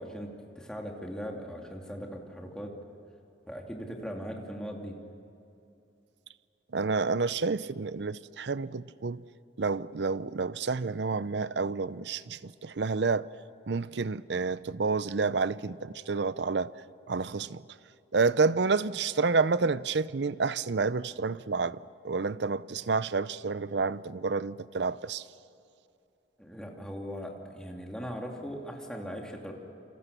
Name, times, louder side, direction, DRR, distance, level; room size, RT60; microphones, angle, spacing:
voice 1, 0.0-2.7 3.5-4.9 26.4-29.5, equal, 5° left, 2.8 m, -39 dB
voice 2, 6.7-9.2 9.6-13.3 13.7-16.7 17.1-17.6 18.1-25.2, right 4 dB, 65° right, 0.6 m, -29 dB
28.5 x 26.5 x 6.9 m
head